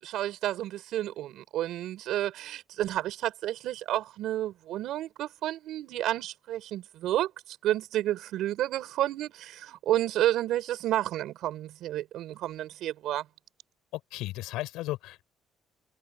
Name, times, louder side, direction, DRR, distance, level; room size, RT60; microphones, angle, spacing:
voice 1, 0.0-13.2, right 13 dB, 70° right, 5.4 m, -31 dB
voice 2, 13.9-15.2, left 17 dB, 90° left, 6.4 m, -35 dB
cardioid pair, 130°, 0 cm